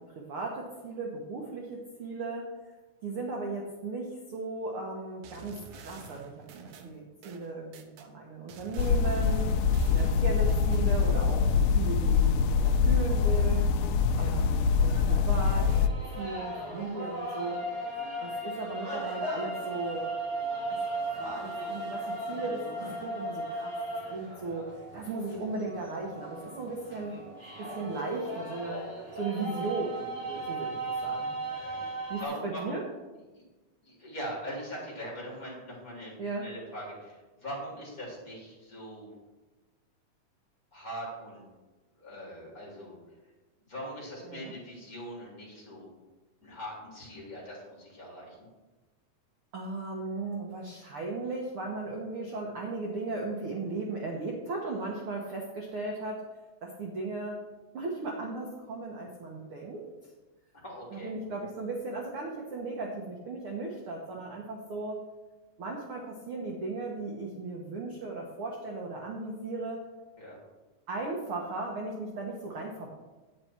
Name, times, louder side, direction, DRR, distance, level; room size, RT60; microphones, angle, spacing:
voice 1, 0.0-2.5 3.0-6.3 6.6-9.5 9.9-11.4 11.7-13.6 14.2-15.9 16.2-17.6 18.2-20.1 20.7-20.8 21.3-22.6 23.0-23.8 24.1-27.2 27.6-31.3 32.1-32.8 36.2-36.5 44.2-44.5 49.5-56.2 56.6-57.4 57.7-59.8 60.9-65.0 65.6-69.9 70.9-72.9, right 3 dB, 55° right, -1 dB, 1.7 m, -36 dB
sound 1, 5.2-8.1 8.5-10.9, right 5 dB, 70° right, 2.3 m, -49 dB
sound 2, 8.8-15.9, left 5 dB, 85° left, 2.2 m, -24 dB
sound 3, 14.9-32.2, right 2 dB, 35° right, 4.0 m, -36 dB
voice 2, 26.9-27.2 31.5-32.8 33.3-33.4 33.8-36.1 36.4-39.1 40.7-41.5 42.0-43.0 43.6-45.9 46.4-48.5 60.6-61.1 70.2-70.4, equal, 25° left, -5 dB, 3.9 m, -42 dB
10.0 x 9.5 x 4.5 m, 1.2 s
omnidirectional pair, 3.7 m